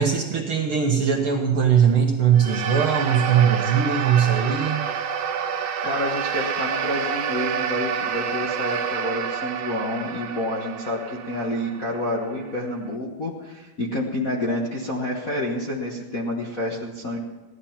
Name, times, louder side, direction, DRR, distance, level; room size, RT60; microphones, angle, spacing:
voice 1, 0.0-4.8, right 7 dB, 60° right, 2 dB, 1.5 m, -20 dB
sound 1, 2.3-12.9, right 7 dB, 90° right, 2.4 m, -28 dB
voice 2, 5.8-17.2, left 1 dB, 45° left, -3 dB, 1.1 m, -28 dB
16.5 x 11.5 x 5.8 m, 1.2 s
omnidirectional pair, 3.5 m